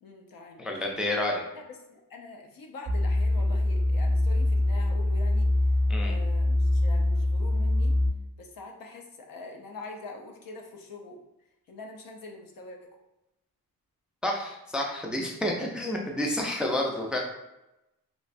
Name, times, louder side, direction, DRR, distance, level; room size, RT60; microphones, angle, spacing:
voice 1, 0.0-0.7 1.5-5.5 6.0-7.9 8.4-11.2 11.7-13.0, left 3 dB, 70° left, 2 dB, 0.7 m, -44 dB
voice 2, 0.6-1.4 5.9-6.2 14.2-17.2, left 1 dB, 5° right, 0 dB, 0.4 m, -29 dB
sound 1, 2.9-8.1, left 1 dB, 70° right, 0.8 m, -24 dB
3.1 x 3.1 x 2.5 m, 0.93 s
cardioid pair, 115°, 36 cm